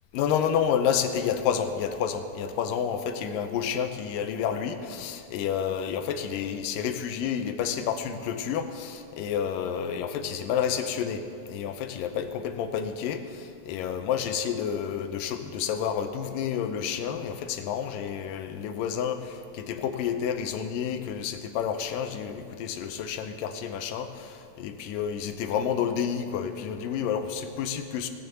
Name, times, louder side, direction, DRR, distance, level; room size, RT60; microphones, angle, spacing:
voice 1, 0.1-11.2 11.5-28.1, left 8 dB, 80° left, 8 dB, 2.4 m, -30 dB
18.0 x 6.8 x 6.9 m, 2.5 s
omnidirectional pair, 3.9 m